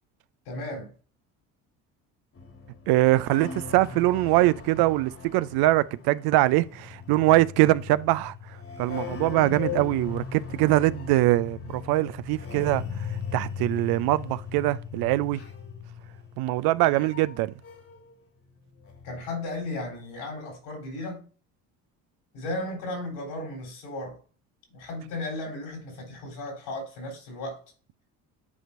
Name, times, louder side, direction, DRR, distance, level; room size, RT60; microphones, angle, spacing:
voice 1, 0.5-0.9 15.3-15.4 19.0-21.3 22.3-24.2 24.7-27.6, left 2 dB, 75° left, 3.6 m, -35 dB
sound 1, 2.4-18.1 18.4-19.3, left 6 dB, 30° left, 1.7 m, -39 dB
voice 2, 2.9-8.3 8.8-15.4 16.4-17.5, right 17 dB, 60° right, 0.5 m, -23 dB
9.7 x 4.4 x 2.5 m
hypercardioid pair, 60°, 43 cm